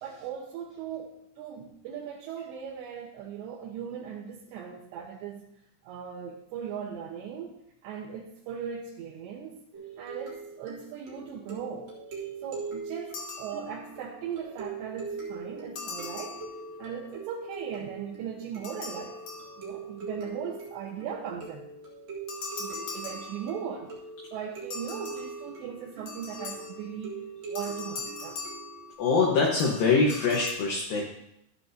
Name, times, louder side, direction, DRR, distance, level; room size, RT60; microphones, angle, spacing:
voice 1, 0.0-5.5 5.8-7.6 7.8-9.7 10.0-11.9 12.4-16.4 16.8-21.7 22.6-23.9 24.3-27.2 27.5-28.4, right 7 dB, 75° right, -3 dB, 3.0 m, -38 dB
sound 1, 9.7-28.9, right 4 dB, 50° right, 2.2 m, -42 dB
sound 2, 13.1-14.1 15.8-17.0 18.6-20.0 22.3-23.9 24.7-27.0 27.6-29.3 29.6-30.5, left 4 dB, 90° left, 1.6 m, -41 dB
voice 2, 29.0-31.1, left 4 dB, 70° left, -2 dB, 2.3 m, -24 dB
13.5 x 8.8 x 2.7 m, 0.78 s
omnidirectional pair, 5.5 m